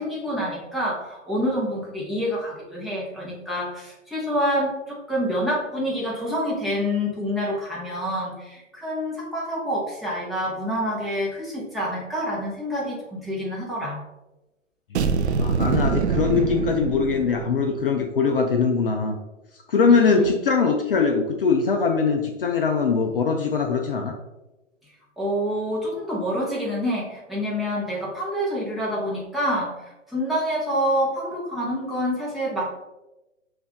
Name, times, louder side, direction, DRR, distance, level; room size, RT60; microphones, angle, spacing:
voice 1, 0.0-14.0 19.9-20.4 25.2-32.7, equal, ahead, -6 dB, 0.9 m, -27 dB
sound 1, 14.9-17.7, right 6 dB, 60° right, 0.5 m, -24 dB
voice 2, 15.4-19.2 19.7-24.1, left 5 dB, 45° left, 4 dB, 0.5 m, -22 dB
5.6 x 2.6 x 3.6 m, 1.0 s
figure-of-eight pair, 120°, 38 cm